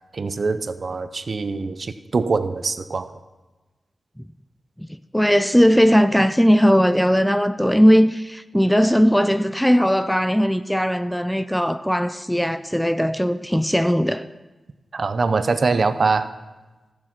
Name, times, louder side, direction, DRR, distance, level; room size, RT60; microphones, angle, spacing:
voice 1, 0.1-3.1 14.9-16.3, right 4 dB, 50° right, 0.5 m, -23 dB
voice 2, 5.1-14.3, equal, ahead, 0.3 m, -18 dB
13.5 x 7.3 x 6.0 m
wide cardioid pair, 135°, 0 cm